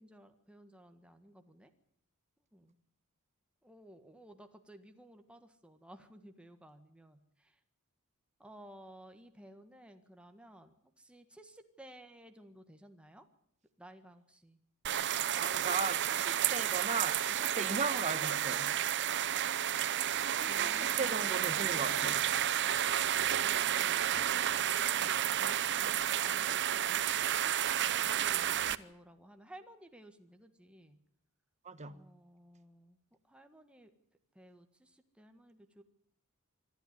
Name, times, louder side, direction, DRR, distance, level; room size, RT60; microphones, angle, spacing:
voice 1, 0.0-1.7 2.5-2.8 3.6-7.6 8.4-13.3 13.8-14.6 14.9-15.1 20.5-21.2 23.4-31.0 31.9-33.0 33.2-33.9 34.3-35.8, right 1 dB, 5° right, 1.6 m, -56 dB
sound 1, 14.8-28.7, right 10 dB, 55° right, 0.8 m, -31 dB
voice 2, 15.3-18.7 20.3-22.2 31.6-32.0, right 4 dB, 30° right, 1.4 m, -37 dB
25.5 x 12.5 x 9.5 m
head